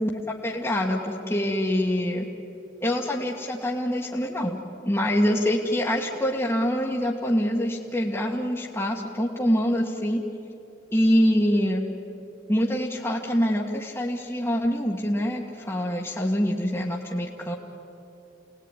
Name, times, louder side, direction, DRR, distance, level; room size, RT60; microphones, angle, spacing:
voice 1, 0.0-2.3 2.8-4.6 4.8-10.2 10.9-11.8 12.5-17.5, equal, 15° left, -4 dB, 1.7 m, -25 dB
29.0 x 19.0 x 9.9 m, 2.9 s
head